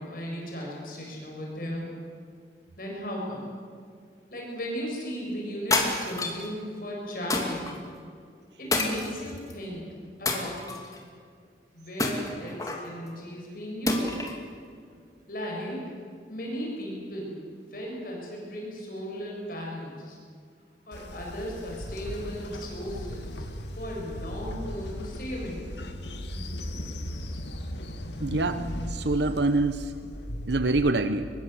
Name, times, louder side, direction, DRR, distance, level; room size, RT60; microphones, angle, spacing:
voice 1, 0.0-1.9 2.8-3.5 4.3-7.7 8.6-9.9 10.2-10.7 11.7-14.3 15.3-15.8 16.3-17.4 17.7-20.2 20.9-23.5 23.8-25.7, equal, 50° left, -2 dB, 7.4 m, -36 dB
sound 1, 5.7-6.5 7.3-7.7 8.7-9.5 10.3-11.0 12.0-12.9 13.9-14.4, left 2 dB, 20° left, 2.7 m, -28 dB
Train, 20.9-30.9, equal, 75° left, 2.1 m, -37 dB
voice 2, 28.2-29.9 30.5-31.3, right 2 dB, 75° right, 10 dB, 0.9 m, -25 dB
24.0 x 22.0 x 8.3 m, 2.1 s
head